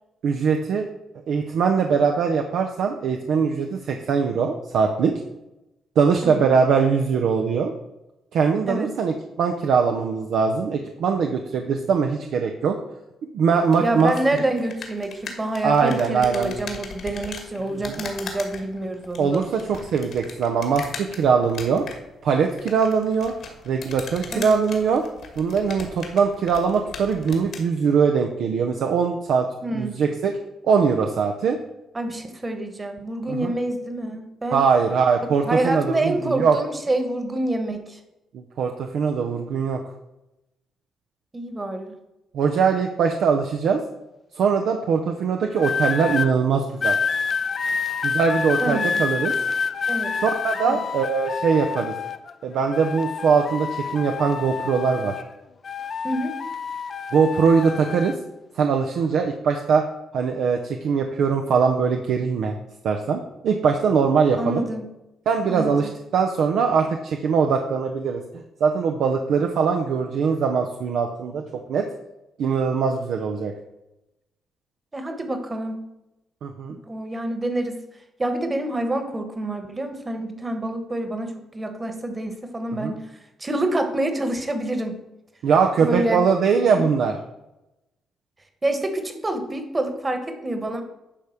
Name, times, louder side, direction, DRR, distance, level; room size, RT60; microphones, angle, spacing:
voice 1, 0.2-0.9 1.3-5.1 6.0-7.7 8.3-12.8 13.3-14.4 15.6-16.5 17.7-18.0 19.2-21.8 22.2-23.3 23.7-25.1 25.4-30.3 30.6-31.6 33.3-33.5 34.5-36.6 38.3-39.8 42.3-43.8 44.3-47.0 48.0-49.3 50.2-51.9 52.4-55.2 57.1-58.1 58.5-59.8 60.1-62.6 62.8-64.7 65.3-71.9 72.4-73.5 76.4-76.8 82.8-82.9 85.4-87.1, right 6 dB, 70° right, 3 dB, 0.7 m, -21 dB
sound 1, 13.7-27.7, left 5 dB, 65° left, 1.8 m, -39 dB
voice 2, 13.8-19.5 24.3-24.6 29.6-30.0 31.9-34.6 35.4-38.0 41.3-41.9 48.6-49.0 49.9-50.2 50.6-50.8 56.0-56.4 64.4-64.9 65.5-65.9 74.9-75.8 76.8-77.8 78.2-83.0 83.4-85.0 85.8-86.2 86.7-86.8 88.6-90.8, right 1 dB, 20° right, 7 dB, 1.4 m, -27 dB
sound 2, 45.6-46.3 46.8-52.3 52.7-55.3 55.6-58.2 58.9-59.2, left 5 dB, 45° left, 0.5 m, -28 dB
10.0 x 3.5 x 6.6 m, 0.94 s
cardioid pair, 90°, 0 cm